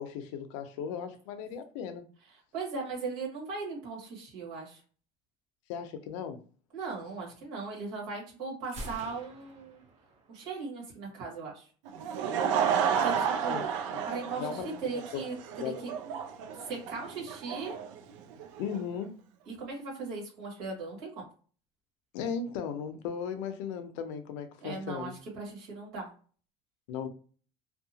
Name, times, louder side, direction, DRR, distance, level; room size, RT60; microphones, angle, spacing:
voice 1, 0.0-2.0 5.7-6.4 13.5-14.0 14.4-14.7 15.1-15.2 15.6-15.8 18.6-19.1 22.1-25.1 26.9-27.1, left 7 dB, 85° left, 0.5 m, -36 dB
voice 2, 2.5-4.8 6.7-9.8 10.3-11.7 12.9-13.6 14.1-15.9 16.6-17.8 19.4-21.3 24.6-26.1, right 4 dB, 60° right, 1.4 m, -38 dB
Gunshot gunfire, 8.6-10.6, right 1 dB, 45° right, 1.0 m, -46 dB
Laughter / Crowd, 11.9-18.8, right 7 dB, 90° right, 0.5 m, -31 dB
2.7 x 2.2 x 2.7 m
cardioid pair, 140°, 16 cm